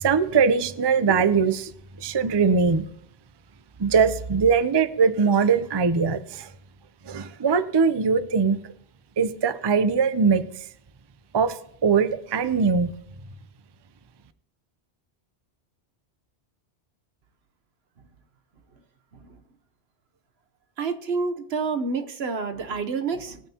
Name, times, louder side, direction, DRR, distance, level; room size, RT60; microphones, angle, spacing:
voice 1, 0.0-1.7 2.0-2.8 3.8-6.5 7.1-8.6 9.2-10.4 11.3-11.6 11.8-12.9, right 5 dB, 30° right, 11 dB, 0.5 m, -21 dB
voice 2, 20.8-23.4, right 4 dB, 70° right, 8 dB, 1.2 m, -28 dB
20.0 x 9.1 x 2.9 m, 0.70 s
omnidirectional pair, 1.1 m